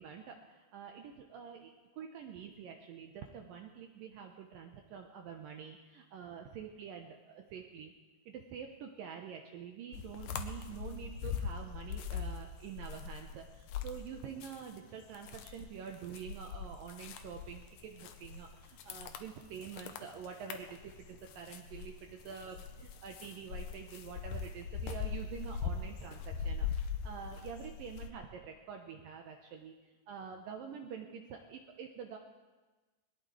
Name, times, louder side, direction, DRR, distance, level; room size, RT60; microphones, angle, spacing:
voice 1, 0.0-7.9 8.3-32.2, right 7 dB, 75° right, 3 dB, 2.1 m, -47 dB
sound 1, 9.9-14.8 15.1-28.1, left 6 dB, 85° left, 1.8 m, -41 dB
21.5 x 19.5 x 3.2 m, 1.2 s
omnidirectional pair, 5.0 m